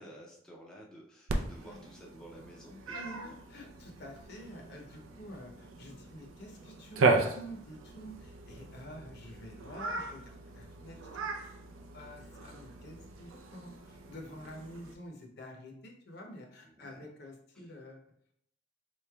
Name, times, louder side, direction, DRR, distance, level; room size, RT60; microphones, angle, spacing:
voice 1, 0.0-3.0 3.2-3.4 16.7-17.0 17.5-17.7, equal, 5° left, -4 dB, 0.4 m, -52 dB
Cat, 1.3-14.9, right 3 dB, 90° right, 0.5 m, -36 dB
voice 2, 2.9-11.4 11.9-18.0, equal, 55° left, 1 dB, 0.7 m, -48 dB
4.0 x 3.1 x 2.3 m, 0.69 s
head